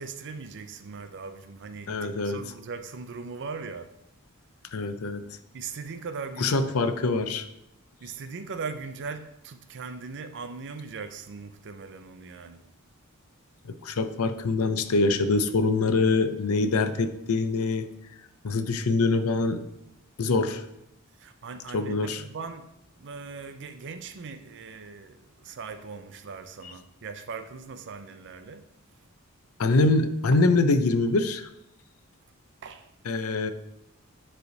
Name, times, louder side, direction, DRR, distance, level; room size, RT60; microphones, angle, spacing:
voice 1, 0.0-4.0 5.5-6.7 8.0-12.7 19.1-19.2 21.2-22.7 23.0-28.7 32.6-32.9, right 4 dB, 55° right, 0.5 m, -39 dB
voice 2, 1.9-2.4 4.7-5.4 6.4-7.5 13.7-17.9 18.4-19.6 20.2-20.6 21.7-22.2 26.6-26.7 29.6-31.5 33.1-33.5, left 3 dB, 75° left, 0.6 m, -24 dB
9.5 x 3.3 x 3.9 m
head